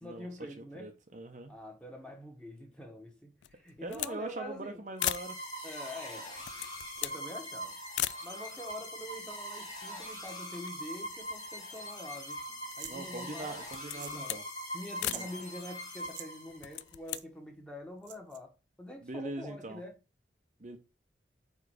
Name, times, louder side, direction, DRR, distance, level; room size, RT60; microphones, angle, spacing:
voice 1, 0.0-0.9 1.5-4.8 5.6-6.3 7.0-7.8 8.2-14.4 14.7-20.0, left 1 dB, 5° left, 1.4 m, -46 dB
voice 2, 0.6-1.5 3.8-5.4 12.9-14.4 15.0-15.4 19.0-19.8 20.6-20.8, right 2 dB, 40° right, 0.7 m, -42 dB
sound 1, 3.4-4.2 4.5-4.6 5.0-5.3 6.2-7.2 7.9-8.2 9.0-9.1 9.3-10.2 10.5-11.8 12.3-13.1 13.6-14.5 15.0-15.3 16.5-17.2, left 15 dB, 75° left, 0.3 m, -38 dB
sound 2, 5.0-16.8, equal, 20° left, 1.7 m, -42 dB
sound 3, 12.7-13.0 13.9-14.3 14.5-14.6 14.9-15.3 16.0-16.3 17.1-17.2 18.0-18.4, right 13 dB, 75° right, 0.5 m, -46 dB
4.9 x 4.8 x 4.8 m
head